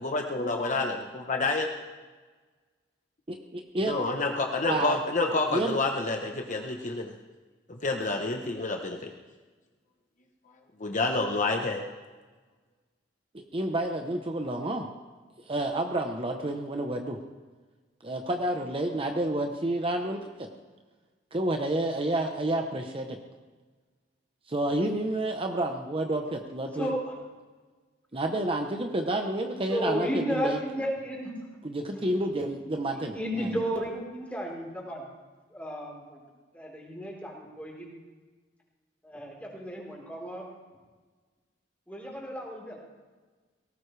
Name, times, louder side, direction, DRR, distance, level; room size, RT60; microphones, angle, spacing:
voice 1, 0.0-1.7 3.9-7.1 7.7-9.1 10.8-11.8, left 3 dB, 45° left, 2 dB, 1.1 m, -28 dB
voice 2, 3.3-3.9 4.7-5.0 5.5-5.8 13.3-14.9 15.5-17.2 18.0-20.5 21.3-23.2 24.5-26.9 28.1-30.6 31.6-33.1, right 1 dB, 30° right, 4 dB, 0.9 m, -29 dB
voice 3, 26.7-27.2 29.7-31.3 32.0-32.1 32.9-35.1 35.5-36.2 36.5-37.9 39.0-40.5 41.9-42.8, equal, 10° left, -3 dB, 4.1 m, -33 dB
18.5 x 18.0 x 3.4 m, 1.3 s
head